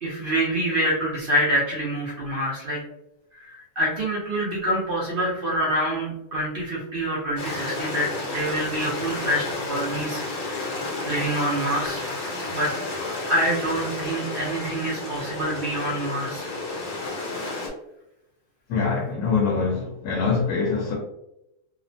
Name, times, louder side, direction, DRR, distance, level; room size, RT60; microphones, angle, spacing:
voice 1, 0.0-2.8 3.4-10.7 11.0-12.0 12.5-12.7 13.3-16.5, right 1 dB, 65° right, -5 dB, 0.5 m, -26 dB
Stream, 7.4-17.7, left 2 dB, 55° left, 0.5 m, -31 dB
voice 2, 18.7-20.9, left 5 dB, 80° left, -2 dB, 1.1 m, -24 dB
2.9 x 2.1 x 2.5 m, 0.87 s
omnidirectional pair, 1.7 m